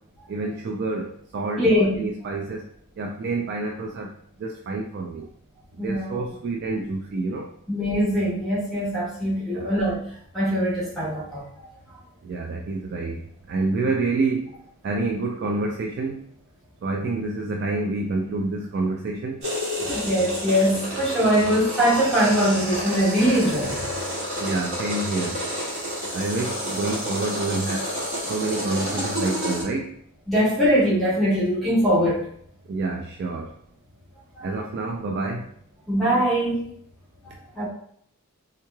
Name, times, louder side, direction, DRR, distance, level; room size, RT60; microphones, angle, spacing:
voice 1, 0.3-2.7 3.0-4.1 4.4-5.3 5.8-7.5 9.4-9.7 12.2-13.2 13.5-14.5 14.8-16.2 16.8-19.4 24.4-25.4 26.1-27.9 28.3-30.0 32.7-33.5 34.4-35.5, right 3 dB, 55° right, 1 dB, 0.3 m, -28 dB
voice 2, 1.6-2.1 5.8-6.2 7.7-10.0 10.3-11.4 19.9-23.8 30.3-32.2 34.3-34.5 35.9-36.6 37.2-37.7, equal, ahead, -10 dB, 1.4 m, -22 dB
sound 1, 19.4-29.6, equal, 85° right, 1.5 m, -30 dB
3.6 x 3.1 x 2.2 m, 0.65 s
head